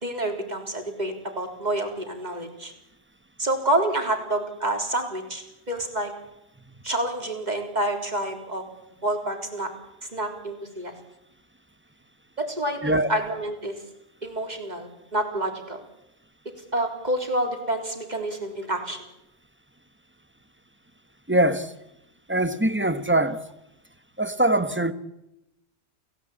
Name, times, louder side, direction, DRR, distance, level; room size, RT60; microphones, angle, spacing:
voice 1, 0.0-2.7 3.4-6.1 6.8-8.6 9.0-9.7 10.1-10.9 12.4-13.7 14.2-15.8 16.7-19.0, right 1 dB, 40° right, 3.9 m, -28 dB
voice 2, 21.3-21.7 22.3-23.4 24.2-24.9, right 1 dB, 10° right, 1.1 m, -22 dB
29.0 x 16.5 x 8.7 m
omnidirectional pair, 1.2 m